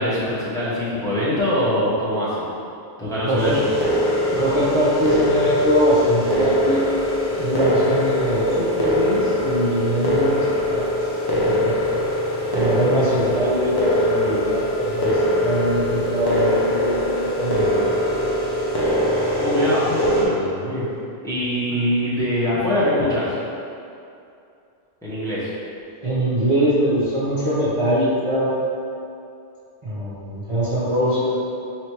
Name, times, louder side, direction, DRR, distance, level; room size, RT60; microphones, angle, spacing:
voice 1, 0.0-2.5 3.0-3.7 19.4-20.9 21.2-23.3 25.0-25.5, left 1 dB, 5° left, -10 dB, 0.8 m, -23 dB
voice 2, 3.2-3.6 4.3-6.8 7.4-11.7 12.5-18.3 21.7-21.8 26.0-28.5 29.8-31.4, equal, 35° right, -11 dB, 0.7 m, -22 dB
sound 1, 3.4-20.2, left 1 dB, 30° left, 0.5 m, -22 dB
3.3 x 3.0 x 4.4 m, 2.6 s
omnidirectional pair, 1.1 m